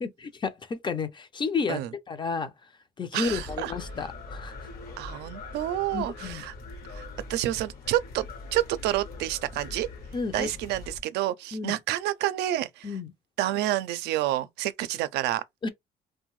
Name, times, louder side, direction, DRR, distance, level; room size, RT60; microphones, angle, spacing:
voice 1, 0.0-1.8 2.1-2.7 3.0-4.7 5.9-6.4 10.1-10.5 11.5-11.8 12.8-13.1 15.6-15.7, left 4 dB, 25° left, 0.5 m, -31 dB
voice 2, 3.1-3.7 5.0-6.5 6.9-8.3 8.5-9.9 10.3-13.0 13.4-15.4, right 14 dB, 80° right, 0.4 m, -29 dB
sound 1, 3.2-11.0, left 3 dB, 60° left, 1.1 m, -42 dB
2.6 x 2.1 x 3.0 m
cardioid pair, 110°, 17 cm